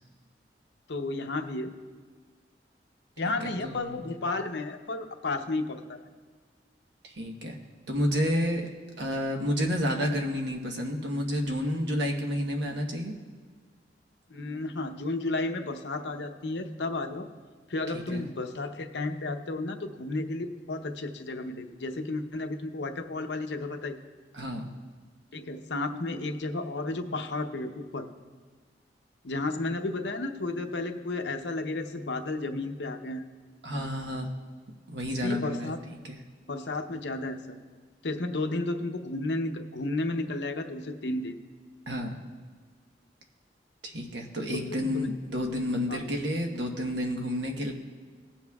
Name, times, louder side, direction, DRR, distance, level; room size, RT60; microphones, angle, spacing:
voice 1, 0.9-1.7 3.2-6.0 14.3-17.3 17.7-24.0 25.3-28.1 29.2-33.2 35.2-35.8 36.5-37.4 38.0-41.4 44.5-45.1 45.9-46.0, left 2 dB, 80° left, 6 dB, 0.8 m, -32 dB
voice 2, 3.4-4.1 7.0-7.6 7.9-8.7 9.0-13.1 17.9-18.2 24.3-24.7 33.6-34.3 34.9-35.7 36.0-36.2 41.9-42.1 43.8-47.7, equal, 80° right, 2 dB, 1.2 m, -30 dB
19.5 x 7.2 x 2.4 m, 1.5 s
head